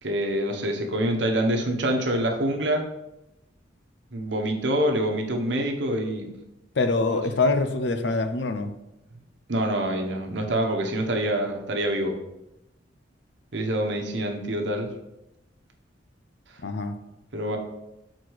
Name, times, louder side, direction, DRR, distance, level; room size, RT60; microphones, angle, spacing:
voice 1, 0.0-2.8 4.1-6.3 9.5-12.1 13.5-14.9 16.5-16.6 17.3-17.6, right 1 dB, 65° right, 2 dB, 1.1 m, -26 dB
voice 2, 6.7-8.7 16.6-17.0, left 3 dB, 65° left, 8 dB, 0.6 m, -24 dB
6.4 x 4.3 x 4.6 m, 0.90 s
head